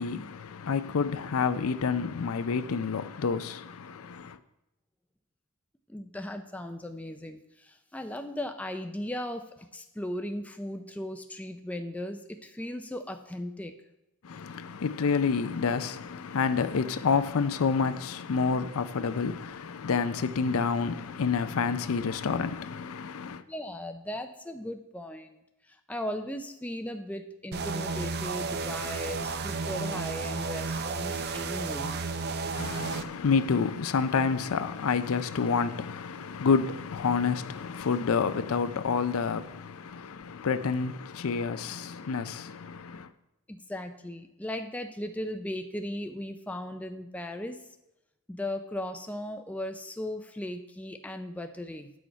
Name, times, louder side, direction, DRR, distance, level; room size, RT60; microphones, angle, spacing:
voice 1, 0.0-4.4 14.2-23.4 32.5-43.1, left 5 dB, 70° left, 0.5 m, -29 dB
voice 2, 5.9-13.7 23.5-25.4 25.7-32.0 43.5-47.6 48.3-51.9, left 1 dB, 5° left, 0.4 m, -37 dB
sound 1, 27.5-33.0, right 4 dB, 45° right, 0.5 m, -32 dB
9.8 x 6.3 x 4.5 m
head